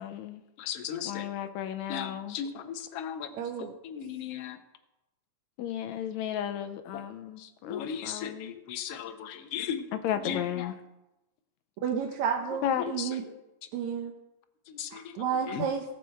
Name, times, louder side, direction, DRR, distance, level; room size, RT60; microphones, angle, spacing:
voice 1, 0.0-0.4 1.0-2.4 5.6-8.6 9.9-10.7 12.6-12.9, left 10 dB, 80° left, 10 dB, 1.9 m, -34 dB
voice 2, 0.6-1.3 1.9-3.3 3.6-4.6 7.4-9.9 10.3-10.7 12.8-13.1 14.7-15.1 15.5-15.6, left 8 dB, 65° left, 8 dB, 1.7 m, -37 dB
voice 3, 3.3-3.7 11.8-13.2 13.7-14.1 14.9-15.8, right 7 dB, 75° right, 1 dB, 2.2 m, -31 dB
19.0 x 6.5 x 4.5 m, 0.95 s
omnidirectional pair, 3.3 m